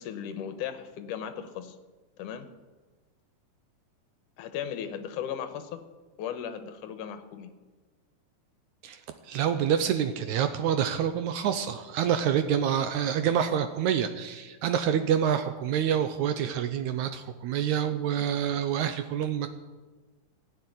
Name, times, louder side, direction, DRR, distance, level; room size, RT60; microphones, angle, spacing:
voice 1, 0.0-1.8 2.2-2.5 4.4-5.8 6.2-7.6 14.9-15.0, left 9 dB, 75° left, 9 dB, 2.3 m, -36 dB
voice 2, 9.3-19.5, right 9 dB, 80° right, 9 dB, 1.7 m, -27 dB
15.5 x 7.2 x 9.3 m, 1.3 s
omnidirectional pair, 4.0 m